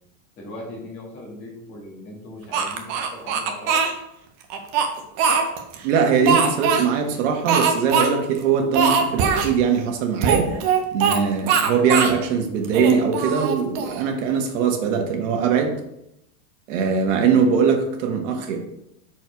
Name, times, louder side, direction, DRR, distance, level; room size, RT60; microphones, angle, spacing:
voice 1, 0.4-3.8, left 1 dB, 25° left, -2 dB, 2.0 m, -38 dB
Speech, 2.5-3.9 4.5-5.8 6.3-6.9 7.5-8.1 8.3-8.4 8.7-9.5 10.2-11.2 11.5-12.2 12.6-14.0, right 6 dB, 25° right, 0.4 m, -21 dB
voice 2, 5.8-10.5 10.9-15.7 16.7-18.6, right 6 dB, 55° right, 3 dB, 1.5 m, -21 dB
6.2 x 4.6 x 4.5 m, 0.80 s
supercardioid pair, 170°, 43 cm